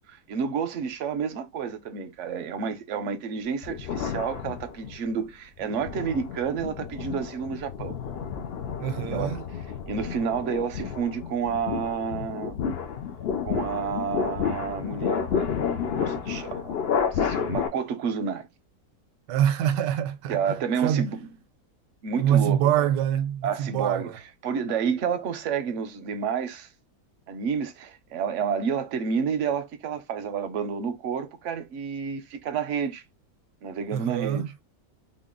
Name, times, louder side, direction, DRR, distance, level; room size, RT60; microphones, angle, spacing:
voice 1, 0.1-8.0 9.1-9.3 9.9-12.6 13.4-16.8 17.1-18.5 20.3-21.2 22.0-22.9 23.4-24.1 24.4-26.7 27.3-33.0 33.6-34.4, right 6 dB, 65° right, 0.8 m, -30 dB
sound 1, 3.6-5.1 5.6-17.7, left 7 dB, 75° left, 0.5 m, -31 dB
voice 2, 8.8-9.4 19.3-21.1 22.2-24.2 33.9-34.5, right 10 dB, 85° right, 1.2 m, -25 dB
3.8 x 2.1 x 3.7 m
omnidirectional pair, 1.8 m